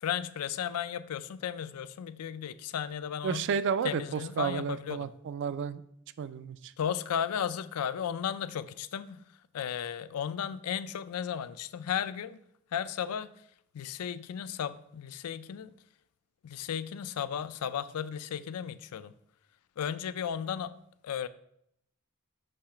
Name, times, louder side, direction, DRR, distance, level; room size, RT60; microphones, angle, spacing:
voice 1, 0.0-3.4 3.8-5.1 6.8-9.2 9.5-12.4 12.7-13.3 13.7-15.7 16.4-19.1 19.8-20.8 21.0-21.3, left 8 dB, 80° left, 15 dB, 0.4 m, -34 dB
voice 2, 3.2-5.8 6.2-6.7, right 6 dB, 55° right, 15 dB, 0.3 m, -32 dB
6.6 x 3.2 x 5.7 m, 0.74 s
head